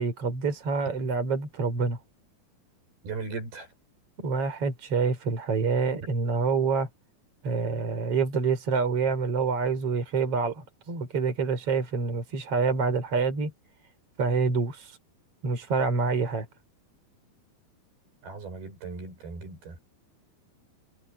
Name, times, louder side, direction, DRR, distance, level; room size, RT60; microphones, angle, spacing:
voice 1, 0.0-2.0 4.2-6.9 7.4-13.5 14.2-14.9 15.4-16.5, right 4 dB, 40° right, 5.6 m, -27 dB
voice 2, 3.0-3.7 18.2-19.8, right 4 dB, 90° right, 9.0 m, -37 dB
omnidirectional pair, 4.3 m